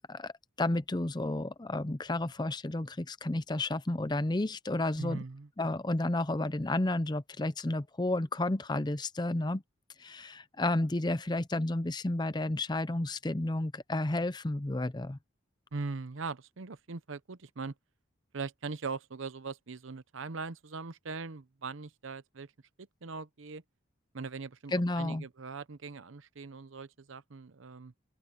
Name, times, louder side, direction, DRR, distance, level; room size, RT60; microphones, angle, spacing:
voice 1, 0.6-5.2 5.6-9.6 10.0-15.2 24.7-25.2, left 2 dB, 20° left, 0.6 m, -31 dB
voice 2, 5.0-5.5 15.7-17.7 18.3-22.5 22.8-23.6 24.1-27.9, right 4 dB, 75° right, 0.8 m, -40 dB
open air
head